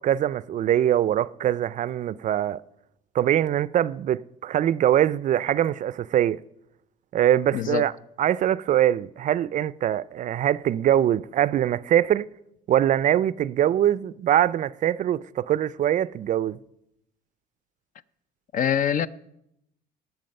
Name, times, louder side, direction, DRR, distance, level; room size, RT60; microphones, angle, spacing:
voice 1, 0.0-2.6 3.1-6.4 7.1-7.9 8.2-12.3 12.7-16.6, right 11 dB, 50° right, 0.4 m, -23 dB
voice 2, 7.5-7.9 18.5-19.1, left 9 dB, 50° left, 0.5 m, -24 dB
18.5 x 7.2 x 5.3 m
cardioid pair, 110°, 17 cm